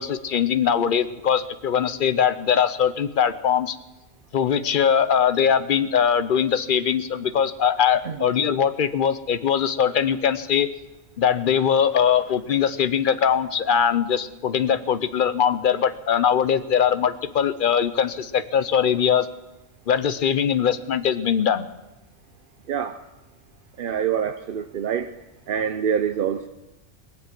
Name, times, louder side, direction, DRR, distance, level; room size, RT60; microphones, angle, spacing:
voice 1, 0.0-3.8 4.3-10.7 11.2-19.3 19.9-21.7, left 8 dB, 50° left, 13 dB, 0.7 m, -21 dB
voice 2, 22.7-23.0 23.8-25.1 25.5-26.5, right 8 dB, 55° right, 7 dB, 0.7 m, -25 dB
21.5 x 7.7 x 7.5 m, 1.0 s
omnidirectional pair, 1.4 m